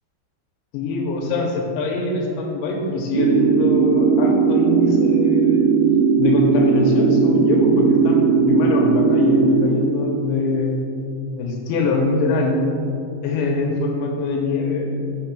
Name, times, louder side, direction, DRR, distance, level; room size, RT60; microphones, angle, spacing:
voice 1, 0.7-5.6 6.2-10.8 11.3-12.6 13.2-14.9, left 3 dB, 85° left, 1 dB, 3.0 m, -23 dB
sound 1, 3.1-9.7, right 5 dB, 90° right, 2.5 m, -17 dB
6.4 x 5.9 x 5.9 m, 2.5 s
omnidirectional pair, 5.5 m